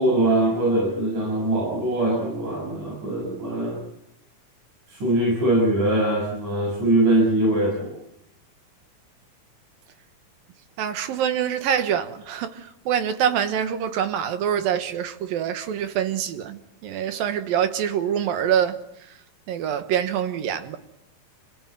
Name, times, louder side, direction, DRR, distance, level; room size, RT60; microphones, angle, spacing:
voice 1, 0.0-3.8 4.9-7.9, right 1 dB, 60° right, 8.2 m, -22 dB
voice 2, 10.8-18.8 19.5-20.8, right 9 dB, 80° right, 3.2 m, -25 dB
27.5 x 17.0 x 9.2 m
omnidirectional pair, 4.1 m